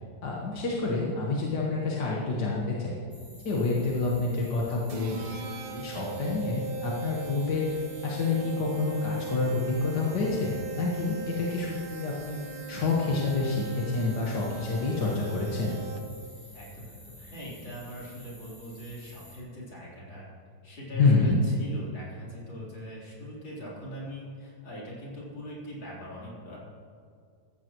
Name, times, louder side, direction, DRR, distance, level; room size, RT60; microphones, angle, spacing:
voice 1, 0.2-3.0 3.5-5.2 5.7-12.4 12.7-15.8 20.9-21.4, left 3 dB, 60° left, -4 dB, 2.1 m, -28 dB
sound 1, 3.1-19.4, equal, 5° left, 3.0 m, -52 dB
sound 2, 4.9-16.3, right 4 dB, 80° right, 1.9 m, -39 dB
voice 2, 16.5-20.3 20.6-26.6, equal, 80° left, -7 dB, 4.6 m, -41 dB
16.0 x 14.5 x 3.1 m, 2.2 s
omnidirectional pair, 2.0 m